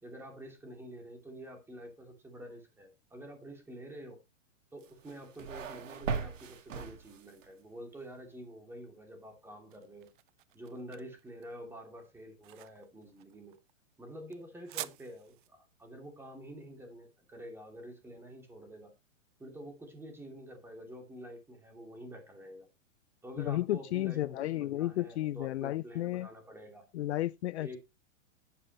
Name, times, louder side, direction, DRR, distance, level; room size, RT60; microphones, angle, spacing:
voice 1, 0.0-4.2 4.7-10.1 10.5-13.6 14.0-18.9 19.4-22.7 23.2-26.9 27.6-27.8, equal, 5° right, 2.8 m, -48 dB
sound 1, 4.8-7.5, right 5 dB, 75° right, 2.2 m, -39 dB
sound 2, 9.2-18.2, right 15 dB, 40° right, 0.6 m, -50 dB
voice 2, 23.4-26.3 26.9-27.8, left 15 dB, 60° left, 0.5 m, -33 dB
11.0 x 9.2 x 3.1 m
hypercardioid pair, 145°, 38 cm